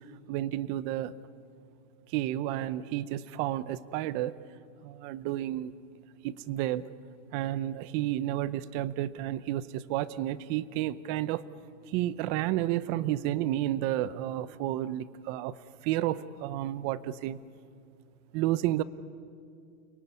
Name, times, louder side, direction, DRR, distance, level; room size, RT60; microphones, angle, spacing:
voice 1, 0.3-1.1 2.1-4.4 4.8-5.7 6.2-6.9 7.3-11.4 11.9-15.6 15.8-17.4 18.3-18.8, right 14 dB, 40° right, 17 dB, 0.8 m, -31 dB
30.0 x 18.0 x 9.7 m, 2.3 s
supercardioid pair, 160°, 38 cm